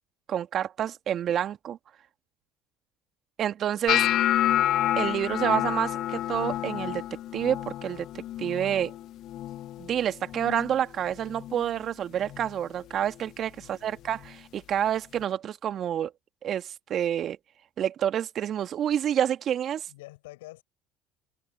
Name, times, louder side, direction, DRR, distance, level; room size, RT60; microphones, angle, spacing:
voice 1, 0.3-1.8 3.4-4.1 5.0-7.0 7.3-8.1 8.4-8.9 9.8-16.1 16.4-17.4 17.8-19.9, right 10 dB, 50° right, 2.0 m, -28 dB
sound 1, 3.9-10.0 10.2-10.8 11.1-11.6 12.3-12.5 14.2-14.3, left 13 dB, 55° left, 0.4 m, -29 dB
voice 2, 13.6-14.1 19.9-20.6, left 20 dB, 80° left, 7.0 m, -47 dB
hypercardioid pair, 70°, 0 cm